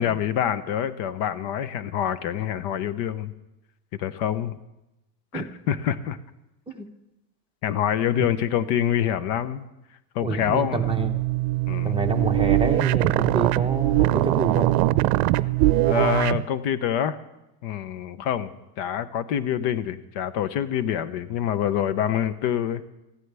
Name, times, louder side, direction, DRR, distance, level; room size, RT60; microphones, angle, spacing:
voice 1, 0.0-3.3 4.0-4.6 5.3-6.2 7.6-9.6 10.1-10.8 11.7-11.9 15.8-17.2 17.6-18.5 18.8-22.8, left 9 dB, 60° left, 14 dB, 0.9 m, -26 dB
voice 2, 10.2-11.1 11.8-14.7, right 3 dB, 10° right, 3 dB, 0.9 m, -27 dB
sound 1, 10.7-16.4, right 17 dB, 70° right, 0.6 m, -22 dB
20.5 x 14.5 x 3.4 m, 0.92 s
supercardioid pair, 130°, 49 cm